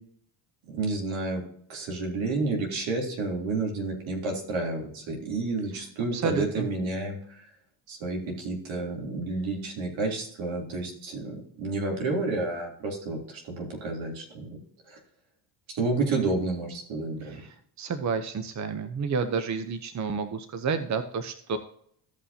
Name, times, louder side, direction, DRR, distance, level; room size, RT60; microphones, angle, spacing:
voice 1, 0.7-1.4 1.7-7.2 7.9-14.6 14.9-15.0 15.7-17.4, right 3 dB, 75° right, -1 dB, 3.5 m, -30 dB
voice 2, 6.1-6.7 17.2-21.6, right 5 dB, 35° right, 9 dB, 0.9 m, -30 dB
15.5 x 5.6 x 2.9 m, 0.65 s
supercardioid pair, 75°, 47 cm